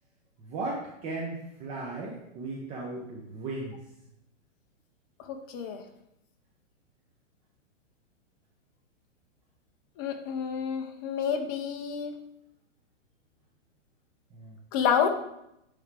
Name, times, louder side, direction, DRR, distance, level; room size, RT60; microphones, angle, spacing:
voice 1, 0.5-3.7 14.4-14.5, right 2 dB, 15° right, -2 dB, 0.8 m, -36 dB
voice 2, 5.3-5.8 10.0-12.1 14.7-15.1, left 7 dB, 20° left, 5 dB, 0.4 m, -29 dB
9.4 x 3.6 x 4.7 m, 0.82 s
hypercardioid pair, 155°, 37 cm